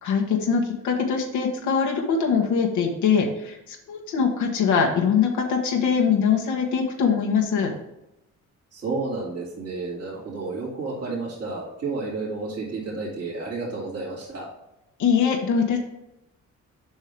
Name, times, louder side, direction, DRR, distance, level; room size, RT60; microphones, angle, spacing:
voice 1, 0.0-7.7 15.0-15.8, left 6 dB, 75° left, 1 dB, 1.4 m, -22 dB
voice 2, 8.7-14.5, right 3 dB, 55° right, -6 dB, 2.7 m, -31 dB
7.1 x 5.6 x 3.4 m, 0.88 s
cardioid pair, 90°, 30 cm